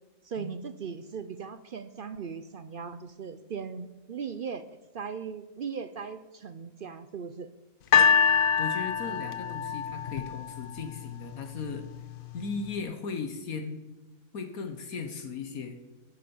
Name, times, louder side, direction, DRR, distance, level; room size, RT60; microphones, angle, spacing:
voice 1, 0.2-4.6 4.9-7.5, right 6 dB, 60° right, 12 dB, 0.5 m, -38 dB
sound 1, 7.9-11.1 11.9-12.0, left 7 dB, 90° left, 0.4 m, -25 dB
voice 2, 8.6-11.9 12.3-13.8 14.3-15.8, left 5 dB, 70° left, 7 dB, 1.5 m, -37 dB
14.0 x 7.8 x 7.1 m, 1.1 s
omnidirectional pair, 1.6 m